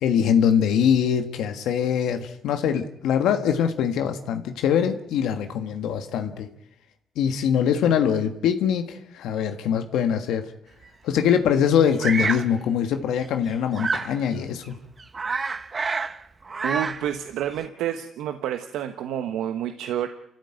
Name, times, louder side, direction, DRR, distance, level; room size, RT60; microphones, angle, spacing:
voice 1, 0.0-6.5 7.1-10.5 11.0-14.8, left 8 dB, 85° left, 7 dB, 1.6 m, -23 dB
Bird vocalization bird call bird song, 12.0-12.5 13.8-14.2 14.6-14.7 15.0-16.2 16.4-17.1, right 4 dB, 35° right, 1.4 m, -27 dB
voice 2, 16.6-20.1, right 10 dB, 85° right, 7 dB, 1.2 m, -29 dB
29.0 x 13.5 x 9.1 m, 0.78 s
cardioid pair, 90°, 0 cm